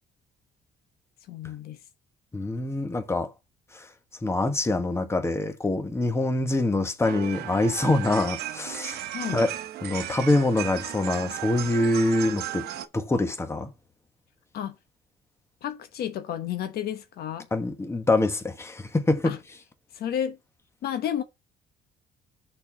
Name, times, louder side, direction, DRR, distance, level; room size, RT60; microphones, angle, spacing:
voice 1, 1.3-1.8 9.1-9.4 14.5-14.8 15.6-17.5 19.2-19.4 19.9-20.4 20.8-21.2, left 10 dB, 65° left, 1.0 m, -31 dB
voice 2, 2.3-3.3 3.7-3.9 4.2-9.0 9.3-9.5 9.8-12.7 12.9-13.7 17.5-19.3, left 2 dB, 15° left, 1.3 m, -25 dB
sound 1, 7.0-12.9, right 13 dB, 70° right, 0.9 m, -35 dB
6.4 x 4.5 x 6.1 m
cardioid pair, 110°, 17 cm